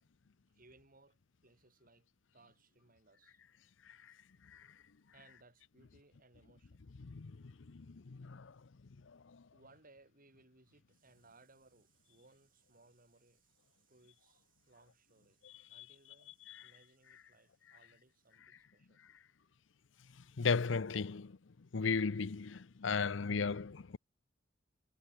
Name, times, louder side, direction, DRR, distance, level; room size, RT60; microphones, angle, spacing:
voice 1, 0.0-2.1 2.3-3.4 5.1-6.8 9.5-19.0 20.2-20.3, right 3 dB, 50° right, 7.9 m, -66 dB
voice 2, 7.0-8.6 9.0-9.4 15.4-15.9 16.5-16.7 20.1-21.3 21.7-24.0, left 5 dB, 75° left, 0.7 m, -37 dB
head